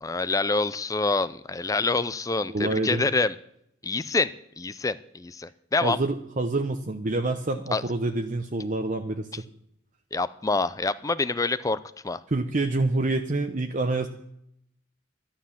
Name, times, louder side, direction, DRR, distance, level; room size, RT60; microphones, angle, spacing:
voice 1, 0.0-3.3 3.8-4.3 4.6-6.0 7.7-7.8 10.1-11.8 12.0-12.2, left 3 dB, 15° left, 15 dB, 0.4 m, -26 dB
voice 2, 2.5-3.0 5.8-9.3 12.3-14.1, right 2 dB, 40° right, 5 dB, 0.8 m, -27 dB
11.5 x 11.5 x 7.1 m, 0.75 s
head